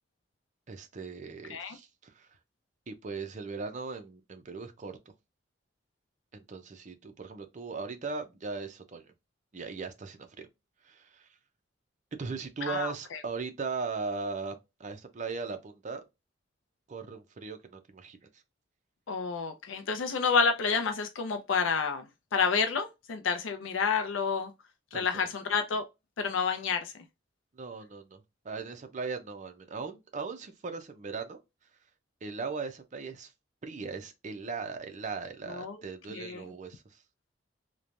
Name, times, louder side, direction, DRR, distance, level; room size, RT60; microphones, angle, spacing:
voice 1, 0.7-2.3 2.9-5.0 6.3-9.1 9.5-10.5 10.8-11.3 12.1-16.0 16.9-18.2 24.9-25.3 27.5-31.4 32.2-33.3 33.6-37.0, right 4 dB, 40° right, 0.5 m, -38 dB
voice 2, 12.7-13.2 19.1-22.0 22.3-24.5 24.9-25.9 26.2-26.9 35.5-35.8 36.1-36.4, left 5 dB, 90° left, 0.4 m, -29 dB
3.1 x 2.1 x 2.5 m
head